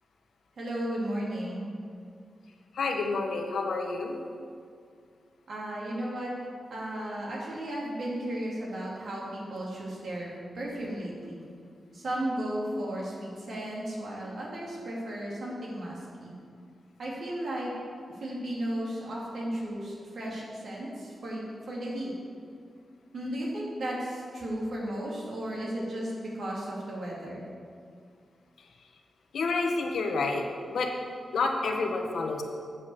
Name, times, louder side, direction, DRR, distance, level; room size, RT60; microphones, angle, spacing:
voice 1, 0.6-1.7 5.5-6.3 6.7-11.5 11.9-16.3 17.0-17.7 18.2-22.1 23.1-27.5, right 1 dB, 60° right, -4 dB, 2.3 m, -34 dB
voice 2, 2.7-4.2 29.3-30.9 31.3-32.4, left 3 dB, 85° left, 3 dB, 1.0 m, -29 dB
8.5 x 5.4 x 7.0 m, 2.2 s
wide cardioid pair, 170°, 0 cm